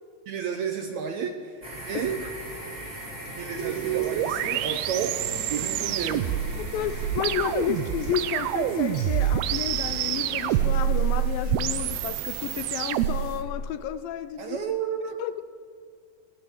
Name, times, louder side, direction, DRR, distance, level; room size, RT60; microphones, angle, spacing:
voice 1, 0.3-2.2 3.3-5.1 5.5-6.3 14.4-15.2, right 7 dB, 70° right, 1.8 m, -31 dB
sound 1, 1.6-13.5, right 1 dB, 20° right, 3.8 m, -41 dB
Acoustic guitar, 3.0-11.0, left 2 dB, 45° left, 3.6 m, -47 dB
sound 2, 3.6-13.3, right 11 dB, 85° right, 2.7 m, -27 dB
voice 2, 6.7-14.7 15.2-15.4, left 11 dB, 80° left, 2.3 m, -31 dB
21.5 x 17.0 x 7.3 m
omnidirectional pair, 4.4 m